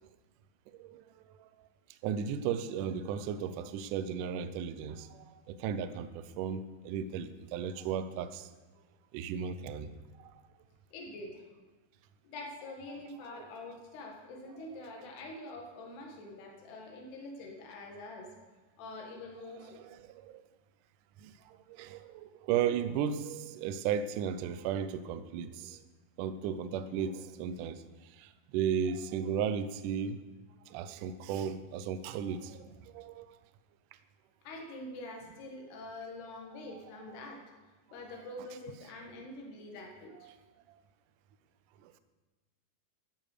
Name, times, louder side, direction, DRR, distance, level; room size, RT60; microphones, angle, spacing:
voice 1, 0.7-1.0 1.4-1.5 2.0-8.5 9.1-9.9 10.2-10.3 13.4-13.5 19.8-20.4 21.2-25.8 26.2-27.8 28.2-30.2 30.7-33.3 40.2-40.4 41.8-41.9, right 8 dB, 90° right, 11 dB, 1.8 m, -35 dB
voice 2, 10.9-11.4 12.2-18.3 18.8-19.8 34.5-37.4 37.9-40.3, left 2 dB, 80° left, 0 dB, 3.9 m, -45 dB
12.5 x 9.7 x 6.6 m, 1.3 s
omnidirectional pair, 4.7 m